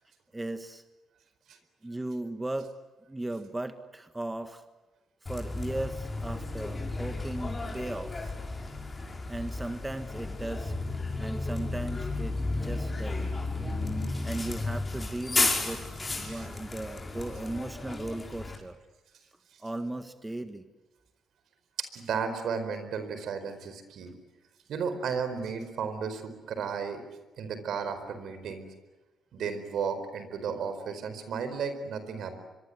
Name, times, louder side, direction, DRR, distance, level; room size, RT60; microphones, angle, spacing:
voice 1, 0.3-0.8 1.8-2.7 3.1-4.6 5.2-8.3 9.3-10.7 11.2-13.4 14.2-15.8 16.2-18.8 19.6-20.6, right 2 dB, 15° right, 9 dB, 1.6 m, -37 dB
Bus, 5.3-18.6, left 2 dB, 25° left, 5.8 m, -33 dB
voice 2, 21.9-24.1 24.7-27.0 27.4-28.7 29.3-32.4, right 6 dB, 70° right, 10 dB, 4.6 m, -34 dB
25.0 x 23.5 x 9.4 m, 1.2 s
cardioid pair, 80°, 0 cm